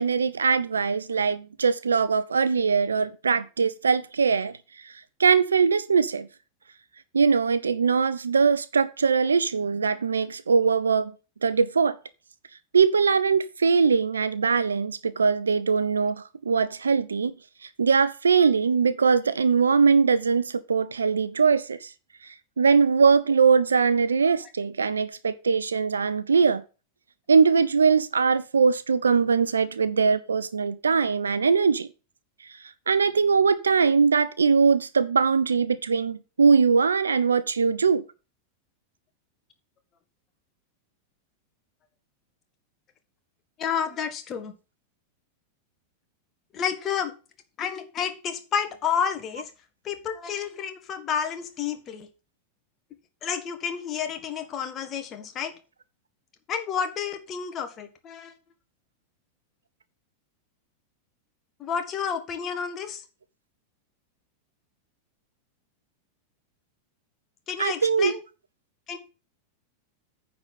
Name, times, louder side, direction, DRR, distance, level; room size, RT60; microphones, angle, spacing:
voice 1, 0.0-4.5 5.2-6.3 7.1-11.1 11.4-12.0 12.7-17.3 17.8-21.9 22.6-26.6 27.3-31.9 32.9-38.0 67.6-68.1, right 5 dB, 75° right, 0.6 m, -21 dB
voice 2, 43.6-44.5 46.5-47.1 47.6-49.5 49.8-52.1 53.2-55.5 56.5-58.3 61.6-63.0 67.5-68.2 68.9-69.0, left 7 dB, 30° left, 1.6 m, -30 dB
9.7 x 4.0 x 7.4 m
figure-of-eight pair, 90°, 0 cm